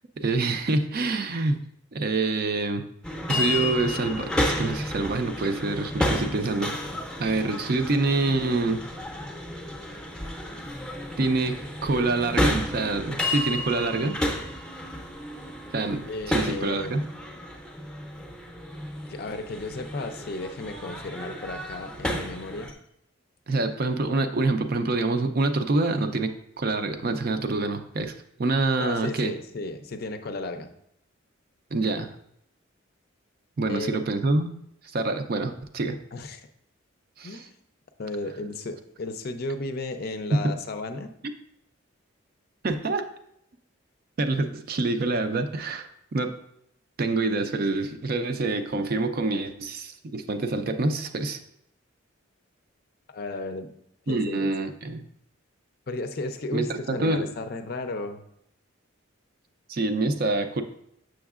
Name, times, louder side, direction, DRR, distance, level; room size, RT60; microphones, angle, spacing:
voice 1, 0.2-1.6 1.9-2.8 3.3-6.7 7.2-8.8 11.2-14.2 15.7-16.0 16.3-17.0 23.5-28.1 28.4-29.3 31.7-32.1 33.6-34.5 34.9-36.0 37.2-37.5 40.3-40.5 42.6-43.1 44.2-46.3 47.0-51.4 54.1-55.0 56.5-57.3 59.7-60.6, right 3 dB, 45° right, 7 dB, 0.4 m, -26 dB
sound 1, 3.0-22.7, left 1 dB, 5° left, 0.6 m, -32 dB
voice 2, 16.1-17.1 19.1-22.7 28.8-30.7 33.7-34.0 36.1-36.4 37.2-37.5 38.0-41.1 53.1-53.7 54.1-54.5 55.9-58.2, left 2 dB, 45° left, 7 dB, 0.5 m, -34 dB
6.9 x 6.3 x 2.4 m, 0.75 s
head